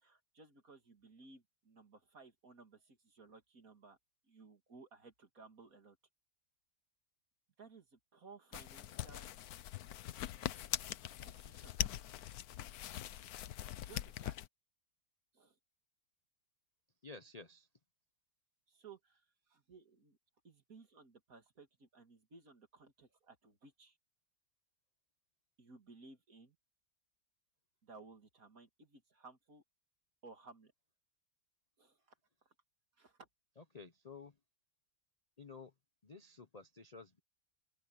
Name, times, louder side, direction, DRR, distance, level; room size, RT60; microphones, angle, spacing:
voice 1, 0.0-4.0 4.3-6.0 7.6-9.3 11.2-11.7 13.8-14.4 15.3-15.5 18.7-20.2 20.4-24.0 25.6-26.6 27.8-29.6 30.2-30.7 31.8-32.0 33.0-33.3, right 4 dB, 55° right, 3.0 m, -58 dB
sound 1, 8.5-14.5, left 12 dB, 70° left, 1.1 m, -42 dB
voice 2, 17.0-17.7 33.7-34.3 35.4-35.7 36.0-37.2, left 4 dB, 35° left, 0.6 m, -52 dB
open air
omnidirectional pair, 1.8 m